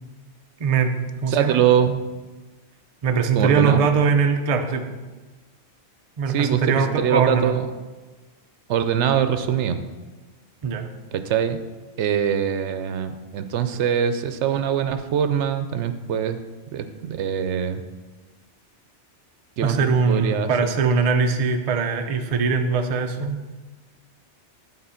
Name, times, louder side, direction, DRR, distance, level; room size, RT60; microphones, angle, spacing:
voice 1, 0.6-1.6 3.0-5.0 6.2-7.6 10.6-10.9 19.6-23.4, right 5 dB, 40° right, 5 dB, 0.5 m, -21 dB
voice 2, 1.3-2.0 3.4-3.9 6.3-7.7 8.7-9.8 11.1-11.6 12.0-16.4 16.7-17.8 19.6-19.8 20.1-20.5, right 8 dB, 80° right, 9 dB, 0.9 m, -23 dB
8.9 x 3.8 x 5.6 m, 1.3 s
omnidirectional pair, 1.2 m